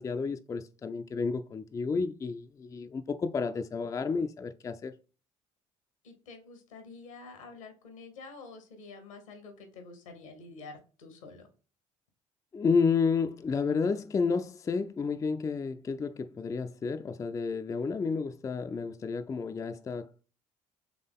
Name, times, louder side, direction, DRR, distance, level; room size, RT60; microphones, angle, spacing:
voice 1, 0.0-4.9 12.5-20.3, left 5 dB, 20° left, 0.3 m, -31 dB
voice 2, 6.0-11.5, left 4 dB, 80° left, 1.1 m, -48 dB
3.7 x 3.5 x 3.6 m
hypercardioid pair, 55°, 16 cm